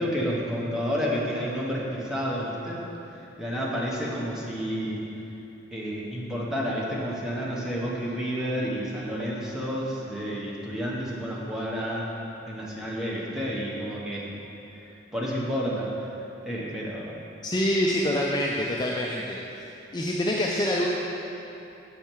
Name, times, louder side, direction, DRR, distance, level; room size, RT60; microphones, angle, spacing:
voice 1, 0.0-2.8 3.4-5.0 5.7-12.1 12.5-14.3 15.1-16.1 16.4-17.1, equal, 5° right, -6 dB, 0.9 m, -30 dB
voice 2, 17.4-19.4 19.9-20.9, left 1 dB, 20° left, -2 dB, 0.3 m, -25 dB
7.1 x 5.5 x 4.5 m, 3.0 s
head